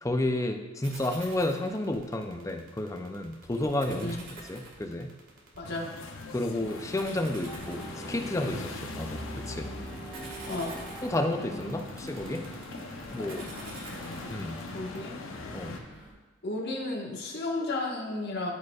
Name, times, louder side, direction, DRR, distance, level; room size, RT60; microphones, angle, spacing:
voice 1, 0.0-4.2 4.4-5.1 6.3-9.7 11.0-12.4 13.1-13.5 14.3-14.5 15.5-15.7, left 1 dB, 15° left, 5 dB, 0.5 m, -31 dB
sound 1, 0.8-15.0, right 3 dB, 75° right, 1.8 m, -47 dB
sound 2, 5.6-15.8, left 3 dB, 75° left, 0.7 m, -41 dB
voice 2, 5.6-5.9 10.5-10.7 14.7-15.1 16.4-18.5, left 2 dB, 50° left, -2 dB, 1.5 m, -33 dB
sound 3, 7.5-16.1, right 1 dB, 5° right, 2.0 m, -45 dB
13.5 x 5.1 x 2.4 m, 1.2 s
head